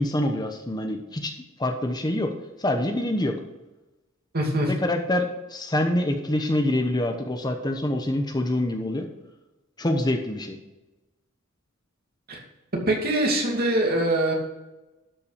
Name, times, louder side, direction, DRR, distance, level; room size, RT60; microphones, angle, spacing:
voice 1, 0.0-1.3 1.6-2.3 2.6-3.4 4.8-9.1 9.8-10.6, left 1 dB, 20° left, 4 dB, 1.0 m, -25 dB
voice 2, 4.3-4.7 12.3-12.4 12.9-14.3, right 1 dB, 50° right, 0 dB, 2.6 m, -23 dB
12.0 x 5.7 x 5.0 m, 1.1 s
head